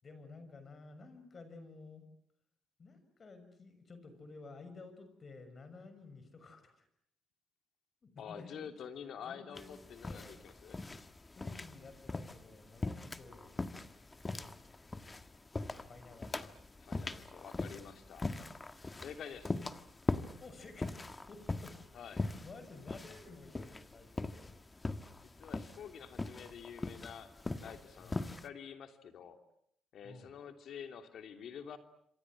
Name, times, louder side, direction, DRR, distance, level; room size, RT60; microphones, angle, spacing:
voice 1, 0.0-2.1 2.8-6.9 8.0-8.7 9.2-10.4 11.4-13.9 15.9-16.4 20.4-21.8 22.1-24.6 28.0-28.2 30.0-30.3, left 3 dB, 40° left, 10 dB, 6.3 m, -53 dB
voice 2, 8.2-10.8 16.3-16.5 16.8-18.3 19.0-19.6 21.9-22.3 25.2-27.3 27.6-29.4 29.9-31.8, left 7 dB, 65° left, 7 dB, 2.9 m, -48 dB
sound 1, 9.6-28.5, left 2 dB, 20° left, 1.5 m, -41 dB
27.5 x 25.5 x 7.5 m, 0.70 s
cardioid pair, 90°, 0 cm